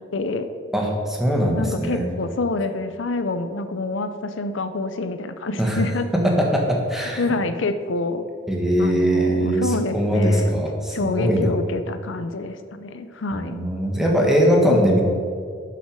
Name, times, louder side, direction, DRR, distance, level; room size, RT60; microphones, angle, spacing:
voice 1, 0.1-0.5 1.5-6.1 7.2-8.2 8.8-10.6 10.9-13.6 14.6-15.0, left 3 dB, 80° left, 10 dB, 0.6 m, -27 dB
voice 2, 0.7-2.1 5.6-5.8 6.1-7.2 8.5-11.5 13.3-15.0, equal, ahead, -1 dB, 1.5 m, -21 dB
12.0 x 6.4 x 5.3 m, 2.2 s
head